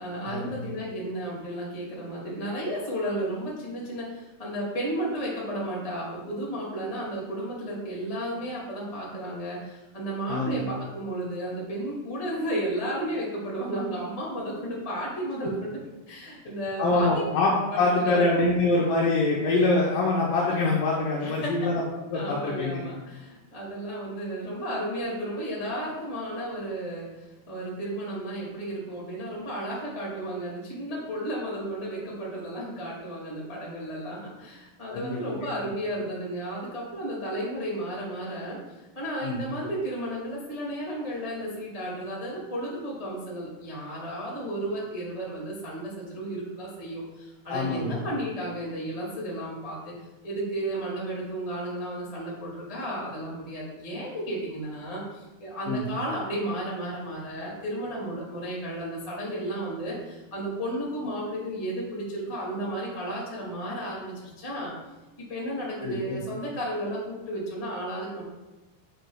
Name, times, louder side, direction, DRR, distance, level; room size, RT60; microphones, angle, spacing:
voice 1, 0.0-15.8 16.1-17.2 17.7-18.2 21.2-21.7 22.1-38.6 38.9-49.9 50.2-64.7 65.2-68.2, right 1 dB, 25° left, -5 dB, 0.7 m, -33 dB
voice 2, 16.8-21.8 22.1-22.8 34.9-35.4 39.2-39.4 47.5-48.0 55.7-55.8 65.8-66.2, left 2 dB, 75° left, -3 dB, 2.1 m, -24 dB
9.2 x 5.2 x 2.3 m, 1.1 s
omnidirectional pair, 4.7 m